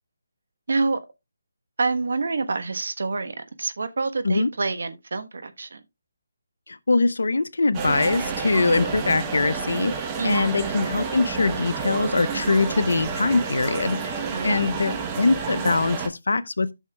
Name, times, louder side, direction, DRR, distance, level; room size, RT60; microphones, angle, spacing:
voice 1, 0.7-1.0 1.8-5.8 10.2-10.6 14.3-14.7, right 3 dB, 70° right, 1.2 m, -27 dB
voice 2, 6.7-16.7, left 3 dB, 75° left, 0.7 m, -23 dB
sound 1, 7.7-16.1, right 5 dB, 20° right, 1.0 m, -30 dB
13.0 x 6.5 x 2.3 m
figure-of-eight pair, 155°, 0 cm